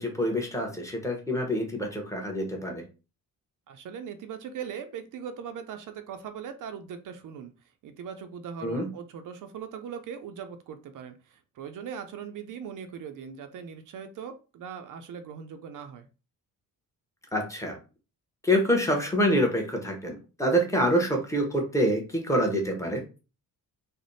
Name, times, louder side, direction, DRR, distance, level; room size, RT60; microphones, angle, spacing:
voice 1, 0.0-2.8 8.6-8.9 17.3-17.8 18.4-23.0, equal, 10° left, 1 dB, 0.8 m, -26 dB
voice 2, 3.7-7.5 7.8-16.1, right 7 dB, 65° right, 8 dB, 0.5 m, -40 dB
3.3 x 2.1 x 3.9 m, 0.32 s
wide cardioid pair, 155°, 34 cm